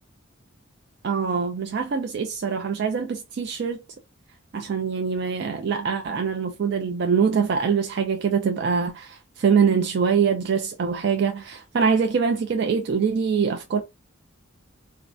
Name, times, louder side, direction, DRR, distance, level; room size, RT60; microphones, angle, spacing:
voice 1, 1.0-3.8 4.5-13.8, right 6 dB, 55° right, 0.3 m, -24 dB
2.4 x 2.1 x 2.5 m
head